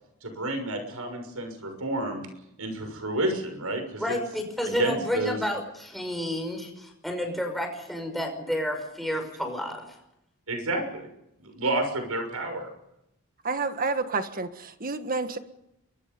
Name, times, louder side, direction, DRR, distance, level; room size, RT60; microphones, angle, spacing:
voice 1, 0.2-2.3 2.6-4.2 4.6-5.4 10.5-11.1 11.4-12.7, right 2 dB, 85° right, 5 dB, 6.5 m, -30 dB
voice 2, 4.0-9.9, equal, ahead, 3 dB, 5.6 m, -30 dB
voice 3, 13.4-15.4, right 3 dB, 40° right, 9 dB, 1.6 m, -29 dB
28.5 x 23.5 x 5.5 m, 0.85 s
head